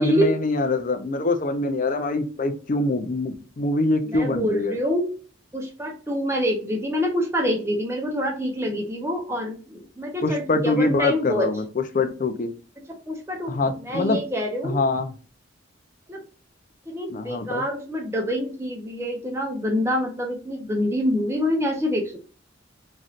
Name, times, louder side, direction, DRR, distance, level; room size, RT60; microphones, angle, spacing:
voice 1, 0.0-4.8 10.2-12.5 13.5-14.2 14.6-15.1 17.1-17.6, left 2 dB, 40° left, 7 dB, 0.4 m, -24 dB
voice 2, 4.1-5.1 5.5-11.5 13.1-14.8 16.1-16.2 16.9-22.1, equal, 15° right, 1 dB, 0.6 m, -26 dB
3.1 x 2.6 x 2.4 m, 0.38 s
head